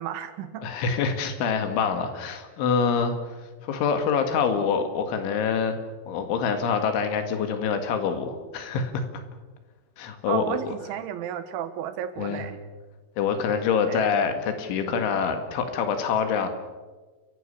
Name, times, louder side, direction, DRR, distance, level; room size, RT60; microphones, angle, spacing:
voice 1, 0.0-0.7 10.3-12.6 13.9-14.1, right 10 dB, 80° right, 11 dB, 3.7 m, -32 dB
voice 2, 0.6-5.7 6.1-9.1 10.0-10.7 12.2-12.4 13.2-16.5, left 6 dB, 85° left, 7 dB, 4.4 m, -26 dB
29.5 x 15.5 x 6.8 m, 1.3 s
omnidirectional pair, 5.4 m